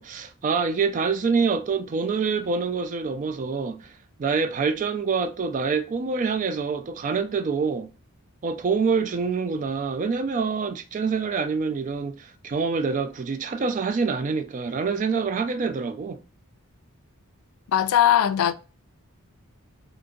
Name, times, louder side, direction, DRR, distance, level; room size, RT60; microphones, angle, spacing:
voice 1, 0.0-3.9 4.2-7.9 8.4-16.2, right 5 dB, 35° right, 0.3 m, -26 dB
voice 2, 17.7-18.5, left 10 dB, 70° left, 0.3 m, -19 dB
2.7 x 2.6 x 3.7 m
head